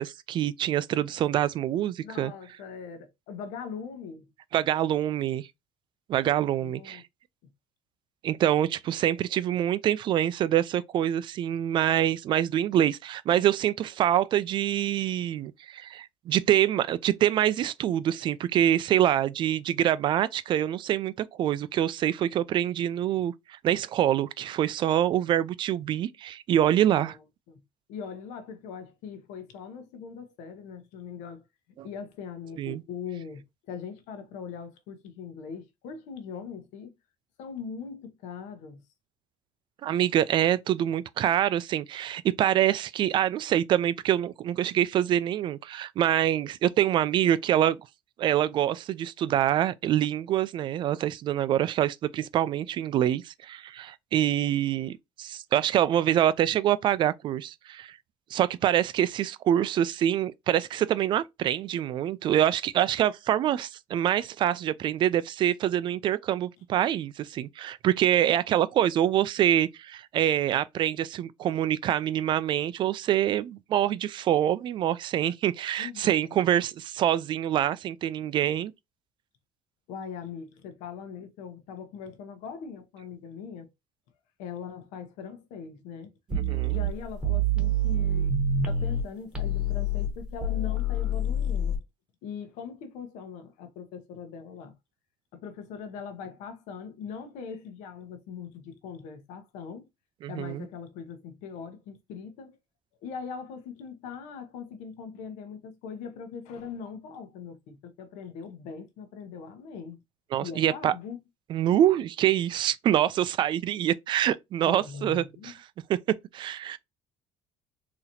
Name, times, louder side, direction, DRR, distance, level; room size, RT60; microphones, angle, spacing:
voice 1, 0.0-2.3 4.5-5.5 6.1-7.0 8.2-27.2 31.8-31.9 32.6-32.8 39.8-47.8 48.2-58.0 58.3-78.7 86.3-86.8 100.2-100.7 110.3-110.9 111.5-115.5 115.9-116.8, right 11 dB, 40° right, 0.3 m, -25 dB
voice 2, 2.0-4.3 6.6-7.0 7.4-7.5 27.0-27.2 27.5-27.6 27.9-31.4 31.8-36.9 37.4-38.8 75.8-76.5 79.9-83.7 84.4-86.1 86.7-88.3 88.7-91.8 92.2-94.7 95.3-99.9 100.3-102.6 103.0-110.0 110.4-111.2 114.6-115.5, left 6 dB, 80° left, 0.9 m, -41 dB
sound 1, 86.3-89.0 89.3-91.8, right 1 dB, 5° right, 1.0 m, -27 dB
4.0 x 2.9 x 2.7 m
cardioid pair, 150°, 12 cm